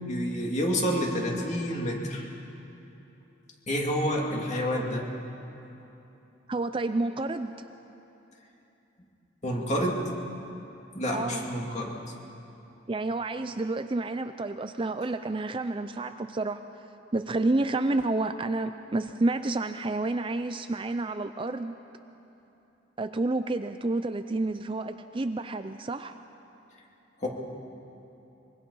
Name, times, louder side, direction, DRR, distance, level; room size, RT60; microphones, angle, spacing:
voice 1, 0.0-2.3 3.7-5.1 9.4-10.0 10.9-11.9 27.2-27.3, equal, 35° left, -1 dB, 2.6 m, -28 dB
voice 2, 6.5-7.5 11.1-11.5 12.9-16.6 17.1-21.7 23.0-26.2, right 2 dB, 25° right, 9 dB, 0.5 m, -29 dB
24.5 x 23.0 x 5.5 m, 3.0 s
head